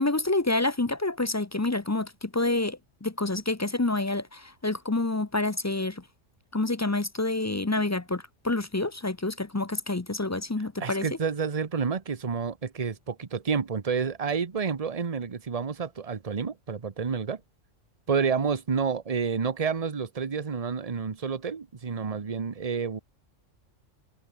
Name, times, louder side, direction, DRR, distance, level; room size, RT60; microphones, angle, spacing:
voice 1, 0.0-6.0 6.5-11.1, left 2 dB, 20° left, 0.5 m, -28 dB
voice 2, 10.8-17.4 18.1-23.0, right 5 dB, 30° right, 1.1 m, -29 dB
omnidirectional pair, 1.3 m